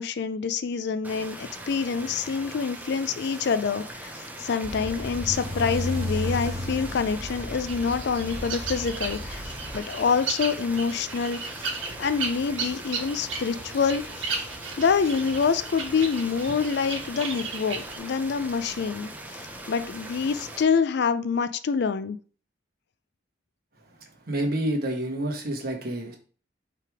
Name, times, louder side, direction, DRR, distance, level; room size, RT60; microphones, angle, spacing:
voice 1, 0.0-9.4 9.7-11.5 12.0-14.3 14.8-19.1 19.7-22.2, left 5 dB, 55° left, 12 dB, 0.4 m, -26 dB
sound 1, 1.0-20.6, right 1 dB, 10° right, 0.6 m, -41 dB
sound 2, 4.6-9.8, left 1 dB, 30° right, 2.2 m, -34 dB
sound 3, 7.6-18.0, right 5 dB, 80° right, 1.5 m, -36 dB
voice 2, 24.2-26.2, right 1 dB, 50° right, 2 dB, 1.4 m, -28 dB
5.6 x 3.5 x 4.7 m, 0.41 s
head